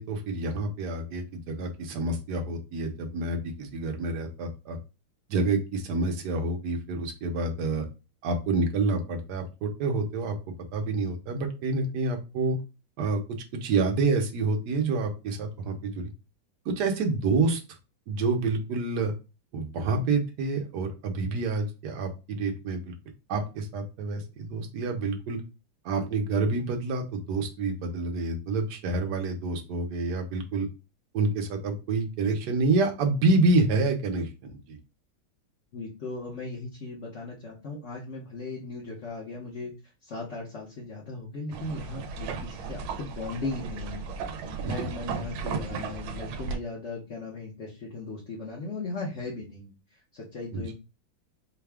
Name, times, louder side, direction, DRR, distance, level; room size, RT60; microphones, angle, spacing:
voice 1, 0.0-4.8 5.3-7.9 8.2-10.4 10.7-12.6 13.0-13.2 13.6-16.1 16.6-17.6 18.1-19.1 19.5-22.9 23.3-25.4 25.8-30.7 31.1-34.8 44.6-44.9 50.5-50.6, right 3 dB, 65° right, 3 dB, 1.3 m, -28 dB
voice 2, 35.7-39.7 40.0-44.1 44.6-49.7 50.1-50.7, left 3 dB, 45° left, -4 dB, 1.0 m, -37 dB
sound 1, 41.5-46.6, right 5 dB, 85° right, 1.5 m, -35 dB
4.8 x 2.3 x 3.4 m, 0.29 s
omnidirectional pair, 2.2 m